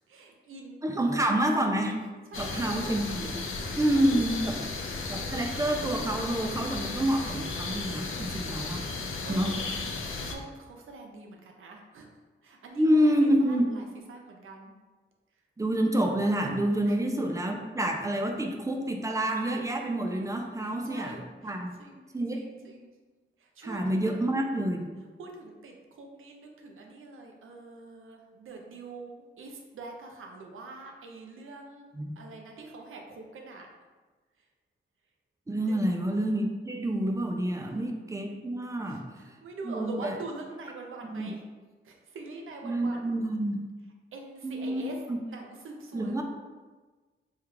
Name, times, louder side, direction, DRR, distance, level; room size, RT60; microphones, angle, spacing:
voice 1, 0.1-1.1 2.3-3.1 3.6-4.7 9.2-9.7 10.0-12.1 12.4-14.7 16.8-17.0 20.6-22.0 22.3-22.9 23.4-24.2 25.2-33.7 35.7-35.9 37.6-37.8 38.7-41.4 41.8-43.0 44.1-45.0 45.3-46.2, right 3 dB, 85° right, 1 dB, 0.5 m, -44 dB
voice 2, 0.8-2.0 2.4-3.3 3.8-4.6 5.1-8.9 9.3-9.6 12.8-13.7 15.6-21.7 22.1-22.5 23.6-24.9 31.9-32.1 35.5-39.0 39.6-40.2 41.0-41.3 42.6-43.6 44.4-44.8 45.1-45.2 45.9-46.2, right 1 dB, 15° right, 2 dB, 0.3 m, -28 dB
sound 1, 2.3-10.4, left 3 dB, 80° left, 0.4 m, -35 dB
3.5 x 2.3 x 3.1 m, 1.3 s
wide cardioid pair, 130°, 20 cm